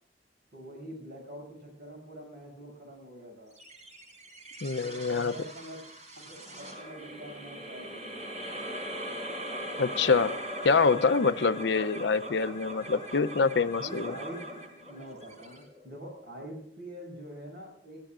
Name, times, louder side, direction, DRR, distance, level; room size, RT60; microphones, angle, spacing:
voice 1, 0.5-3.5 4.8-5.8 6.2-8.4 13.7-18.0, right 1 dB, 60° right, 7.0 m, -45 dB
sound 1, 3.6-16.2, equal, 40° right, 4.3 m, -40 dB
voice 2, 4.6-5.3 9.8-10.4 10.6-14.1, left 4 dB, 65° left, 0.6 m, -25 dB
22.0 x 15.0 x 2.5 m
head